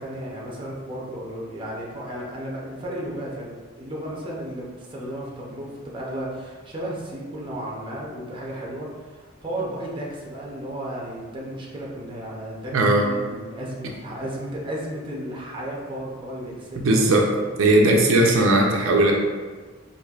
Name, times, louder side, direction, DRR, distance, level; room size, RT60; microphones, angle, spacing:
voice 1, 0.0-12.7 13.0-17.3, right 1 dB, 25° right, -3 dB, 0.6 m, -34 dB
voice 2, 12.7-13.0 16.8-17.3 17.6-19.1, right 2 dB, 85° right, 0 dB, 0.5 m, -18 dB
4.3 x 2.6 x 2.4 m, 1.4 s
head